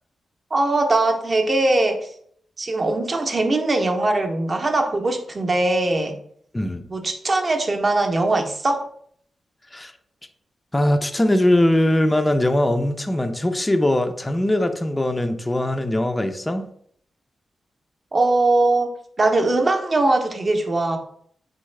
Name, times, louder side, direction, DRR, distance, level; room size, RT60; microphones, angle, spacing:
voice 1, 0.5-2.1 2.6-6.2 6.9-8.9 18.1-18.9 19.2-21.0, right 2 dB, 35° right, 4 dB, 0.7 m, -21 dB
voice 2, 10.7-16.6, left 1 dB, 15° left, 6 dB, 0.3 m, -21 dB
3.9 x 3.5 x 3.2 m, 0.64 s
wide cardioid pair, 130°, 0 cm